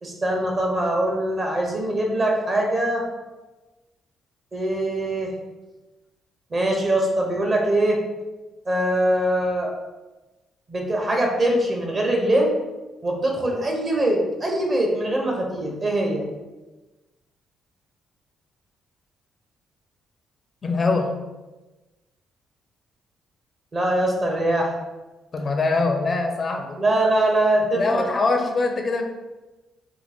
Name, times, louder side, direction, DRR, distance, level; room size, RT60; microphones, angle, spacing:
voice 1, 0.0-3.0 4.5-5.3 6.5-8.0 8.7-9.7 10.7-12.5 13.0-16.3 23.7-24.7 26.8-28.1, right 1 dB, 35° right, 0 dB, 0.9 m, -22 dB
voice 2, 20.6-21.1 25.3-26.8 27.7-29.0, left 3 dB, 35° left, 4 dB, 0.4 m, -23 dB
2.9 x 2.4 x 4.1 m, 1.1 s
cardioid pair, 90°, 0 cm